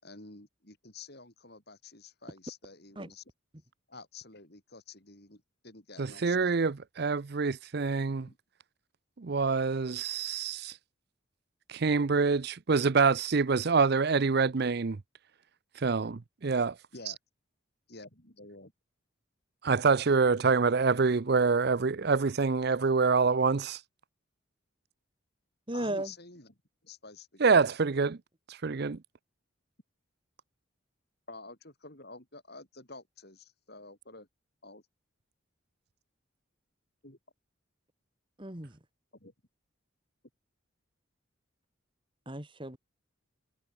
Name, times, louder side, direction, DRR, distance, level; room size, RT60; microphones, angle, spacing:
voice 1, 0.0-3.2 3.9-6.6 8.3-8.4 16.9-17.2 17.9-18.7 25.7-26.5 26.8-27.7 31.3-34.3 34.6-34.8 37.0-37.2 39.2-39.3, left 3 dB, 50° left, 5.4 m, -49 dB
voice 2, 6.0-8.3 9.2-10.7 11.7-15.0 15.8-16.7 19.6-23.8 27.4-28.2 28.6-29.0, right 4 dB, 50° right, 0.5 m, -26 dB
voice 3, 25.7-26.1 38.4-38.8 42.3-42.8, right 1 dB, 25° right, 1.9 m, -35 dB
head